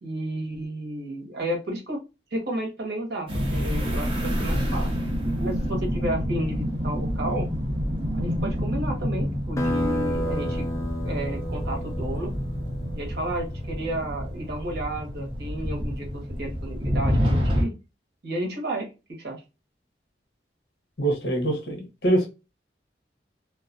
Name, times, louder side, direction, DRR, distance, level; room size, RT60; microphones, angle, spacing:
voice 1, 0.0-2.0 2.3-4.9 5.4-7.5 8.1-10.7 11.0-12.3 12.9-17.7 18.2-18.9 19.2-19.4, right 1 dB, 60° right, 0.9 m, -32 dB
sound 1, 3.3-17.6, equal, 30° right, 0.8 m, -28 dB
sound 2, 9.6-14.7, equal, 15° left, 0.3 m, -31 dB
voice 2, 21.0-22.3, right 1 dB, 70° left, 0.9 m, -24 dB
2.4 x 2.3 x 2.5 m
head